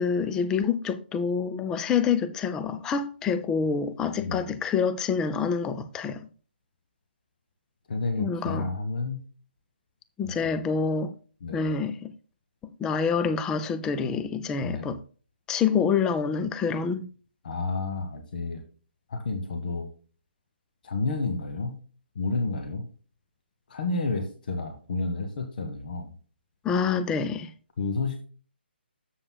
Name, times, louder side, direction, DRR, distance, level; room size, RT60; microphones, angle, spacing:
voice 1, 0.0-6.2 8.2-8.7 10.2-11.1 11.5-12.1 12.8-15.0 15.5-17.1 26.6-27.5, left 6 dB, 10° left, 0.4 m, -27 dB
voice 2, 4.2-4.5 7.9-9.2 10.2-10.6 11.4-11.7 14.6-14.9 17.4-18.6 19.1-19.9 20.8-21.8 22.1-22.9 23.7-26.1 27.8-28.2, left 3 dB, 50° left, 1.3 m, -30 dB
11.0 x 7.8 x 2.3 m
figure-of-eight pair, 140°, 6 cm